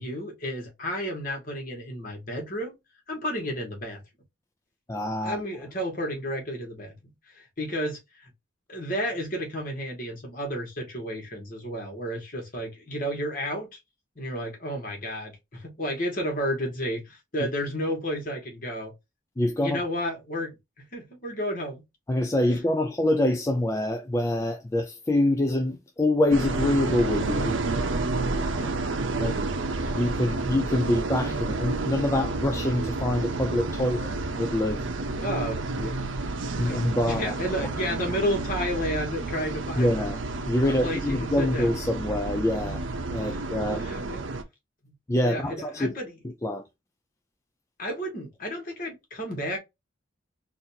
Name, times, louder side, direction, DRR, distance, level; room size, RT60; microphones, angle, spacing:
voice 1, 0.0-2.8 3.1-4.0 5.2-8.3 8.7-13.7 14.1-18.9 19.6-21.8 22.5-22.6 29.1-29.5 29.8-29.9 31.3-31.5 33.8-34.2 35.2-39.9 40.6-41.7 43.2-43.4 43.7-44.2 44.8-44.9 45.2-46.1 47.8-49.6, equal, 45° left, 1.7 m, -32 dB
voice 2, 4.9-5.4 19.4-19.8 22.1-27.6 29.2-29.5 29.9-34.1 34.3-34.8 35.8-35.9 36.6-37.3 39.8-40.2 40.5-42.8 43.1-43.8 45.1-45.9 46.2-46.6, left 1 dB, 15° left, 0.4 m, -25 dB
sound 1, 26.3-44.4, right 3 dB, 80° right, 0.7 m, -30 dB
4.0 x 2.7 x 2.8 m
head